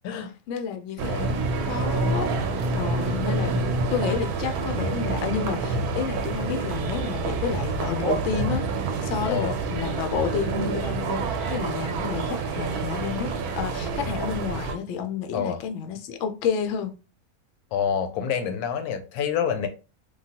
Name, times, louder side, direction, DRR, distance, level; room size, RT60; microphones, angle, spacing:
voice 1, 0.5-2.3 2.7-3.5 3.9-13.3 13.6-16.9, left 7 dB, 65° left, 0.7 m, -30 dB
sound 1, 1.0-14.7, right 3 dB, 85° right, 1.1 m, -27 dB
voice 2, 9.2-9.6 15.3-15.6 17.7-19.7, left 7 dB, 85° left, 1.1 m, -27 dB
3.1 x 2.3 x 2.8 m
omnidirectional pair, 1.6 m